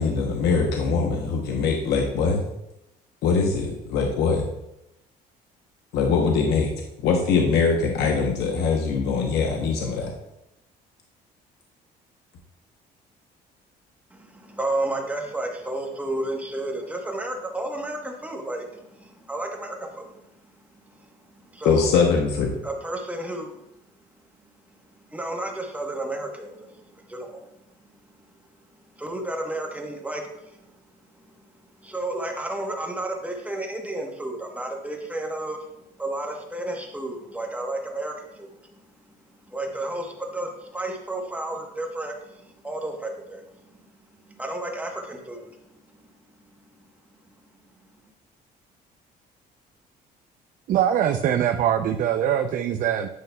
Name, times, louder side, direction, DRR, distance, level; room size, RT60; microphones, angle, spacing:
voice 1, 0.0-2.4 3.2-4.4 5.9-6.7 7.0-10.1 21.6-22.5, left 5 dB, 80° left, 2 dB, 0.8 m, -22 dB
voice 2, 14.1-20.2 21.0-21.9 22.6-23.6 25.1-27.4 29.0-30.6 31.8-35.7 36.0-38.5 39.5-43.7 44.3-45.6, right 1 dB, 10° right, 1 dB, 1.0 m, -32 dB
voice 3, 50.7-53.1, right 10 dB, 50° right, 5 dB, 0.4 m, -22 dB
9.4 x 5.2 x 2.2 m, 0.85 s
cardioid pair, 110°, 17 cm